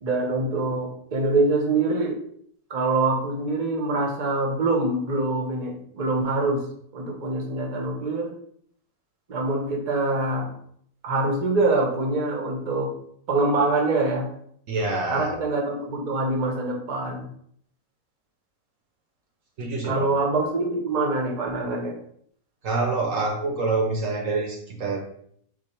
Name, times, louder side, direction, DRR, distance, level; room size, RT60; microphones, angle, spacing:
voice 1, 0.0-2.2 2.7-6.6 6.9-8.3 9.3-10.5 11.0-12.9 13.3-14.3 15.1-17.3 19.8-22.0, right 2 dB, 35° right, 1 dB, 0.7 m, -24 dB
voice 2, 14.7-15.3 19.6-20.1 22.6-25.0, right 3 dB, 65° right, 2 dB, 1.0 m, -26 dB
4.5 x 2.5 x 4.3 m, 0.66 s
omnidirectional pair, 1.7 m